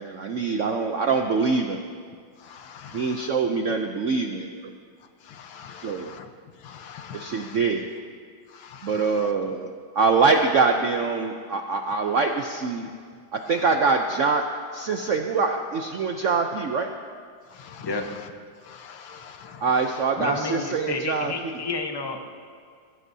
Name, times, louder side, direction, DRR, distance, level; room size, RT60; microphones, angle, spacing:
voice 1, 0.0-1.8 2.9-4.7 5.8-6.1 7.1-7.9 8.8-12.9 13.3-14.4 14.7-16.9 19.6-21.3, right 4 dB, 70° right, 4 dB, 0.7 m, -24 dB
voice 2, 2.5-3.3 5.3-6.3 6.6-7.6 8.6-9.0 17.6-17.9 18.7-19.6, left 7 dB, 85° left, 6 dB, 1.7 m, -43 dB
voice 3, 20.2-22.2, left 3 dB, 20° left, 3 dB, 0.6 m, -30 dB
21.5 x 15.5 x 2.7 m, 2.1 s
omnidirectional pair, 2.1 m